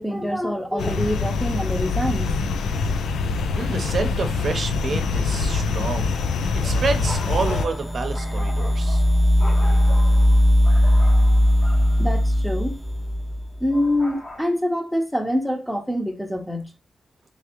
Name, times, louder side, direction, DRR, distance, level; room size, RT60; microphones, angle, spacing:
voice 1, 0.0-2.4 12.0-12.8 13.6-16.7, left 1 dB, ahead, 0.8 m, -25 dB
sound 1, 0.8-7.7, left 4 dB, 85° left, 0.4 m, -24 dB
voice 2, 3.5-6.1 6.5-9.0, right 4 dB, 55° right, 0.8 m, -28 dB
sound 2, 5.5-14.4, left 1 dB, 30° left, 0.8 m, -40 dB
sound 3, 6.2-13.7, equal, 15° right, 0.3 m, -19 dB
3.3 x 3.3 x 2.9 m
cardioid pair, 65°, 0 cm